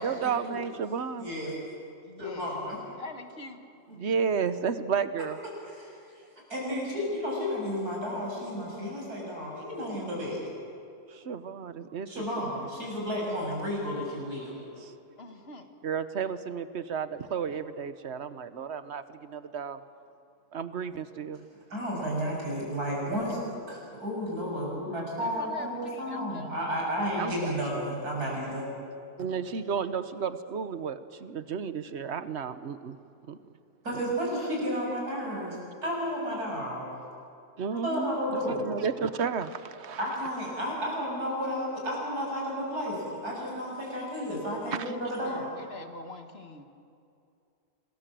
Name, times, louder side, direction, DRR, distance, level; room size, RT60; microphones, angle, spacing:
voice 1, 0.0-1.3 3.9-5.4 11.1-12.1 14.8-14.9 15.8-19.8 20.5-21.5 27.2-27.5 29.2-33.0 33.3-33.4 37.6-40.0 44.7-44.8, right 6 dB, 50° right, 12 dB, 1.1 m, -32 dB
voice 2, 1.2-1.5 2.2-2.8 5.7-5.9 6.5-10.4 12.1-14.5 21.7-28.7 33.8-35.6 35.8-36.9 37.7-38.6 40.0-45.5, equal, 85° right, -2 dB, 7.8 m, -32 dB
voice 3, 2.0-2.5 3.0-3.6 15.2-15.7 25.2-26.7 27.0-27.2 45.2-46.6, left 3 dB, 40° left, 6 dB, 1.8 m, -44 dB
27.0 x 21.0 x 7.6 m, 2.5 s
omnidirectional pair, 1.6 m